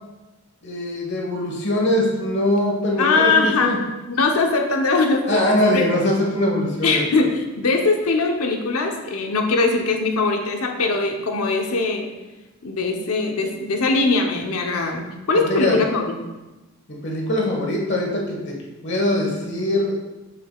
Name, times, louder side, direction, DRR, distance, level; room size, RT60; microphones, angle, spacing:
voice 1, 0.6-3.8 5.3-7.0 15.5-15.8 17.0-18.6 18.8-20.0, left 1 dB, 50° left, -1 dB, 1.3 m, -22 dB
voice 2, 3.0-3.8 4.1-5.8 6.8-12.1 12.6-16.2, left 3 dB, 85° left, 3 dB, 0.8 m, -21 dB
6.7 x 6.7 x 2.3 m, 1.1 s
head